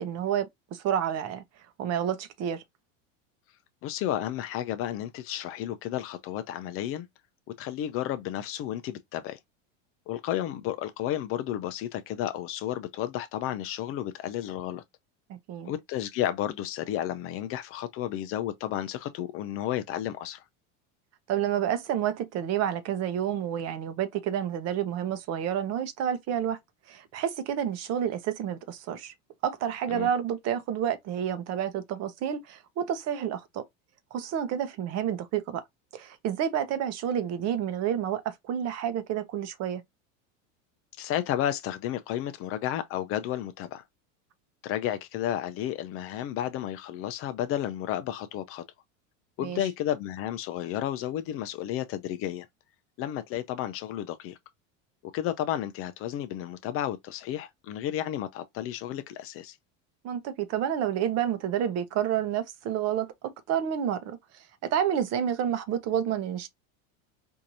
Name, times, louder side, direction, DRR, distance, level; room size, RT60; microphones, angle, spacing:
voice 1, 0.0-1.4 1.8-2.6 15.3-15.7 21.3-26.6 26.9-29.1 29.4-33.6 34.1-35.6 35.9-39.8 49.4-49.6 60.0-64.2 64.6-66.5, right 9 dB, 40° right, 0.7 m, -29 dB
voice 2, 3.8-7.1 7.6-9.4 10.1-14.8 15.6-20.4 29.9-30.1 41.0-43.8 44.6-48.6 49.4-52.5 53.0-54.4 55.1-59.6, left 11 dB, 35° left, 0.4 m, -32 dB
4.6 x 2.6 x 2.7 m
supercardioid pair, 130°, 39 cm